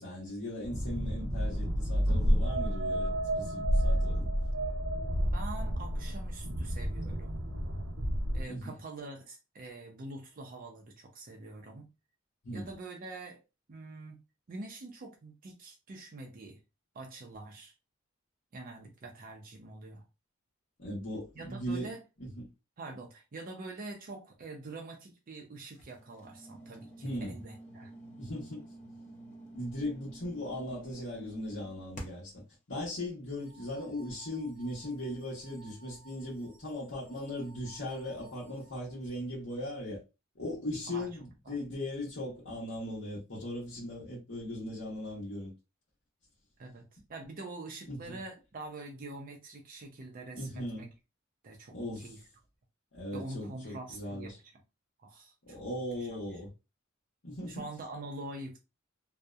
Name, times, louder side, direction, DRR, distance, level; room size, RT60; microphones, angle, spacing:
voice 1, 0.0-4.3 8.5-8.7 12.4-12.7 20.8-21.9 22.2-22.3 27.0-27.4 28.2-28.6 29.5-32.4 32.7-40.0 40.4-45.5 47.9-48.2 50.4-50.9 51.7-52.2 52.9-54.4 55.5-56.5 57.2-57.6, left 1 dB, 65° left, 0.9 m, -38 dB
sound 1, 0.6-8.4, equal, 85° right, 0.7 m, -30 dB
voice 2, 5.3-7.4 8.3-11.9 12.5-13.4 13.7-14.2 14.5-16.6 16.9-17.7 18.5-20.0 21.4-22.0 22.8-27.9 40.9-41.1 41.5-41.6 46.6-50.9 51.4-52.2 53.1-54.5 55.0-55.6 56.0-56.2 57.5-58.6, right 2 dB, 45° right, 0.5 m, -45 dB
sound 2, 25.7-32.4, right 1 dB, 40° left, 0.6 m, -50 dB
sound 3, 33.3-39.1, right 4 dB, 10° right, 0.7 m, -59 dB
2.7 x 2.0 x 2.3 m
head